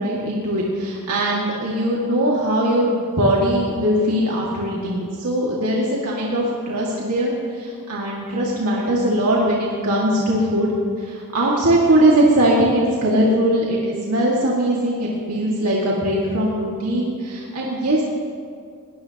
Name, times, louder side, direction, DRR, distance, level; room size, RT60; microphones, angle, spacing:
voice 1, 0.0-10.7 11.0-18.0, right 1 dB, 85° right, -4 dB, 2.2 m, -20 dB
21.0 x 18.5 x 3.0 m, 2.2 s
head